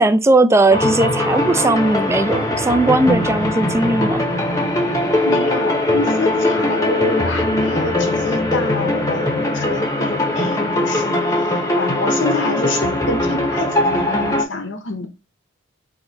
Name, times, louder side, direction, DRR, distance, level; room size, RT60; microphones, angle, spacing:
voice 1, 0.0-4.2, right 2 dB, 15° right, 0.3 m, -17 dB
sound 1, 0.7-14.4, left 1 dB, 15° left, 0.8 m, -20 dB
voice 2, 5.2-11.2 11.7-15.1, left 2 dB, 65° left, 0.7 m, -26 dB
4.2 x 2.7 x 3.9 m
head